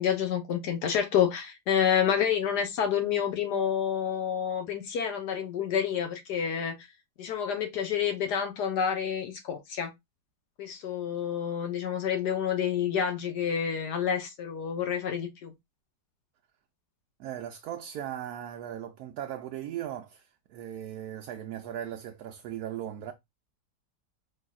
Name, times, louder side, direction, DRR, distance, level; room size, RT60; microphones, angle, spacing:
voice 1, 0.0-6.9 7.2-9.9 10.6-15.5, left 8 dB, 70° left, 1.4 m, -28 dB
voice 2, 17.2-23.1, right 10 dB, 70° right, 1.0 m, -38 dB
5.3 x 3.4 x 2.3 m
omnidirectional pair, 1.9 m